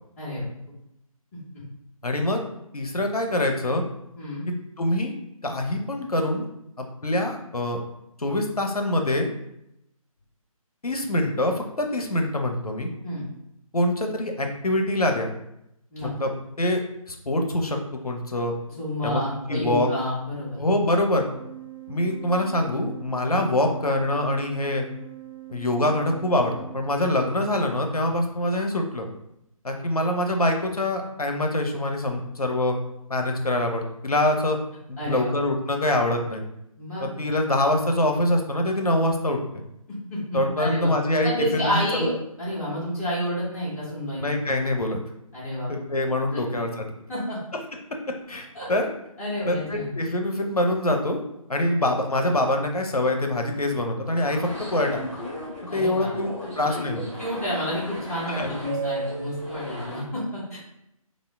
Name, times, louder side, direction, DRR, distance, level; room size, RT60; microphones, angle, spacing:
voice 1, 2.0-2.4 2.7-3.8 4.8-5.1 5.4-6.5 6.8-7.8 8.2-9.3 10.8-12.9 13.7-15.3 16.0-16.8 17.1-17.8 18.0-18.5 19.0-19.2 19.5-19.9 20.6-21.3 21.9-24.8 25.5-29.1 29.6-32.8 33.1-34.6 34.9-36.4 37.0-39.6 40.3-42.1 44.2-45.0 45.7-46.9 48.3-48.9 49.5-51.2 51.5-55.0 55.7-56.3 56.6-57.0 58.3-58.5, left 1 dB, 85° left, 3 dB, 0.6 m, -24 dB
voice 2, 4.2-4.5 13.0-13.2 15.9-16.1 18.8-20.6 35.0-35.3 36.8-37.0 40.1-40.9 41.2-42.1 42.4-44.4 45.3-45.7 46.3-46.6 47.1-47.4 48.5-48.7 49.2-49.9 55.7-56.1 56.4-60.6, equal, 25° left, -10 dB, 1.0 m, -30 dB
Organ, 21.2-27.8, right 17 dB, 55° right, 0.6 m, -43 dB
sound 1, 54.2-60.0, right 1 dB, ahead, 0.7 m, -35 dB
3.5 x 2.0 x 3.5 m, 0.81 s
figure-of-eight pair, 150°, 19 cm